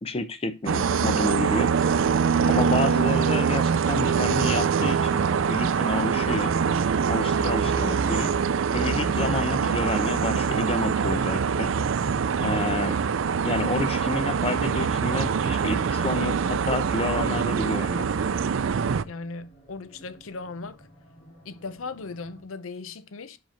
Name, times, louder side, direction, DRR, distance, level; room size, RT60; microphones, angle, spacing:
voice 1, 0.0-1.7 2.5-6.5 7.1-8.3 8.7-11.7 12.4-13.0 13.4-18.1, left 2 dB, 30° left, 0.7 m, -29 dB
sound 1, 0.7-19.0, right 6 dB, 70° right, 0.4 m, -24 dB
sound 2, 13.9-22.4, equal, 55° left, 2.5 m, -55 dB
voice 2, 19.1-20.9 21.4-23.4, left 3 dB, 85° left, 0.6 m, -38 dB
5.9 x 5.1 x 5.1 m
head